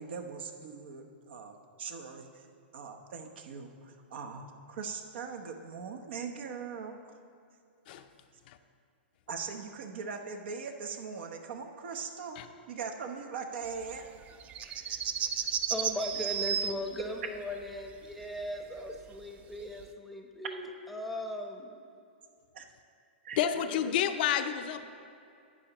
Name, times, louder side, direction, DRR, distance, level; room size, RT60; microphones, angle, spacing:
voice 1, 0.0-2.3 2.7-7.0 9.3-12.4 12.7-14.0 22.5-22.7 23.2-23.4, right 5 dB, 65° right, 5 dB, 0.9 m, -40 dB
sound 1, 14.1-16.7 18.8-18.9 19.8-19.9, right 8 dB, 20° right, 0.3 m, -32 dB
voice 2, 14.7-15.0 15.7-21.7 23.6-23.9, left 1 dB, ahead, 2 dB, 0.8 m, -38 dB
voice 3, 23.4-24.9, left 9 dB, 55° left, 9 dB, 0.5 m, -29 dB
11.5 x 8.5 x 3.0 m, 2.4 s
hypercardioid pair, 130°, 6 cm